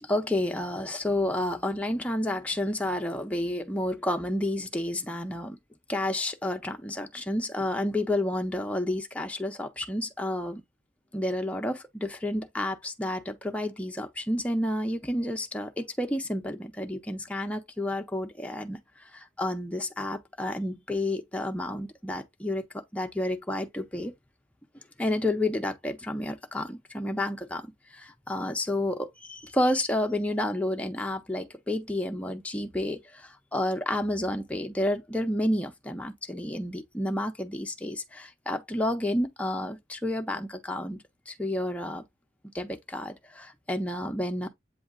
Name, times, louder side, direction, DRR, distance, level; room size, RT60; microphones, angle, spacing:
voice 1, 0.0-5.6 5.9-10.6 11.1-18.8 19.1-22.6 22.9-24.1 25.0-27.6 27.9-42.0 42.5-44.5, left 1 dB, 5° left, 0.5 m, -30 dB
7.9 x 2.8 x 2.4 m
head